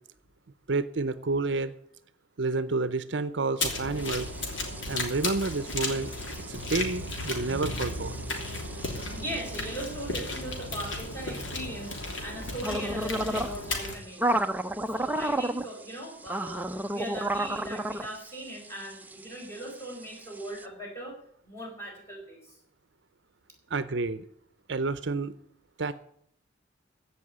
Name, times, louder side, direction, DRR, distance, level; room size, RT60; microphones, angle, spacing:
voice 1, 0.7-1.7 2.4-4.3 4.9-6.1 6.5-8.1 23.7-24.2 24.7-25.4 25.8-25.9, right 3 dB, 60° right, 14 dB, 0.7 m, -29 dB
sound 1, 3.6-14.0, left 2 dB, 70° left, 3.0 m, -34 dB
sound 2, 4.0-20.6, right 1 dB, 10° right, 0.6 m, -35 dB
voice 2, 8.6-14.4 14.9-21.2 21.4-22.6, right 1 dB, 15° left, -1 dB, 4.9 m, -40 dB
15.5 x 5.7 x 9.8 m, 0.67 s
head